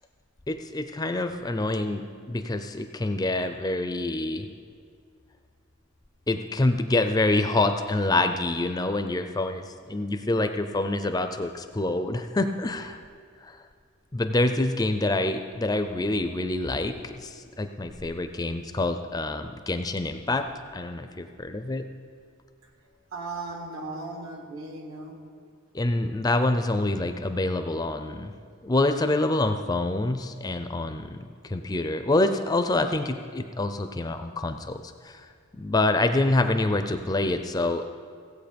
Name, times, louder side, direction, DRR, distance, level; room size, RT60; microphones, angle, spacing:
voice 1, 0.5-4.5 6.3-13.0 13.4-13.6 14.1-20.5 20.7-21.8 25.7-28.3 28.6-35.2 35.6-38.0, left 2 dB, 15° left, 8 dB, 0.4 m, -26 dB
voice 2, 23.1-25.4, right 2 dB, 75° right, 2 dB, 1.8 m, -37 dB
16.0 x 8.1 x 5.2 m, 2.1 s
head